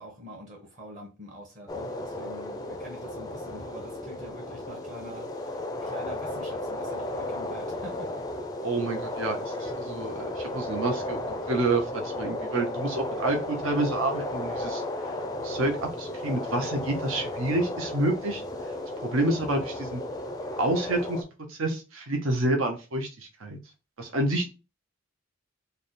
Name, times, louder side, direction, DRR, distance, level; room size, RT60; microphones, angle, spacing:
voice 1, 0.0-8.1, equal, 35° right, -1 dB, 1.1 m, -45 dB
sound 1, 1.7-21.2, left 1 dB, 20° left, 0.4 m, -34 dB
voice 2, 8.6-14.8 15.4-18.4 19.0-20.0 20.5-21.2 21.5-23.6 24.0-24.5, right 2 dB, 75° right, 3 dB, 0.7 m, -28 dB
3.4 x 2.2 x 4.1 m, 0.30 s
head